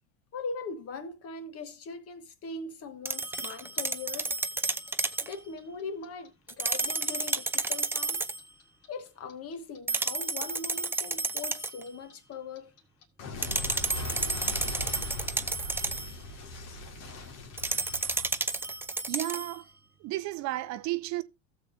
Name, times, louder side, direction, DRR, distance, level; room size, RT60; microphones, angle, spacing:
voice 1, 0.3-4.3 5.2-8.2 8.9-12.7, left 4 dB, 40° left, 1.3 m, -40 dB
sound 1, 3.1-5.3 6.5-8.4 9.9-11.8 13.4-16.1 17.6-19.6, right 3 dB, 5° right, 0.4 m, -31 dB
Clock, 3.5-6.5 6.8-9.8 10.0-18.9, left 1 dB, 60° left, 2.1 m, -40 dB
voice 2, 19.1-19.7 20.0-21.2, right 17 dB, 50° right, 0.6 m, -33 dB
16.5 x 7.1 x 2.7 m
hypercardioid pair, 85°, 37 cm